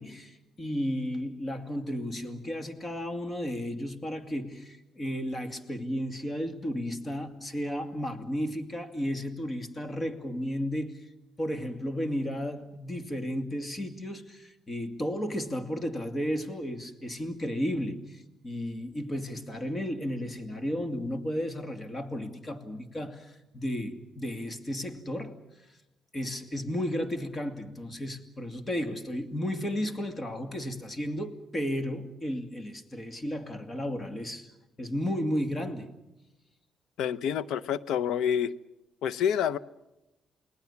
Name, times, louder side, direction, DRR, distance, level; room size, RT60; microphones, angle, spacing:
voice 1, 0.0-11.0 11.4-25.4 26.1-34.5 34.8-36.0, equal, 30° left, 2.5 m, -33 dB
voice 2, 37.0-38.5 39.0-39.6, left 8 dB, 80° left, 0.8 m, -27 dB
29.0 x 19.0 x 7.2 m
cardioid pair, 90°, 0 cm